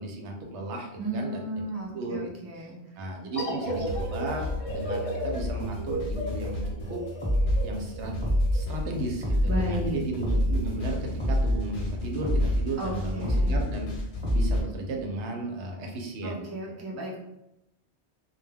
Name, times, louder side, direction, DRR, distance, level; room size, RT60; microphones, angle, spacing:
voice 1, 0.0-1.6 1.9-2.7 3.0-6.6 6.9-7.0 7.6-8.2 8.5-13.9 14.3-16.5, right 2 dB, 85° right, 2 dB, 0.9 m, -34 dB
voice 2, 1.0-2.8 9.4-10.0 12.8-13.5 16.2-17.2, right 1 dB, 25° right, -3 dB, 0.4 m, -34 dB
sound 1, 3.3-8.6, equal, 40° left, 0.6 m, -35 dB
sound 2, 3.6-14.6, left 1 dB, 70° left, 0.9 m, -35 dB
sound 3, 7.2-7.6 8.2-8.6 9.2-9.6 10.2-10.6 11.2-11.6 12.2-12.6 13.2-13.6 14.2-14.6, equal, 5° right, 0.9 m, -24 dB
2.2 x 2.2 x 3.3 m, 0.88 s
omnidirectional pair, 1.1 m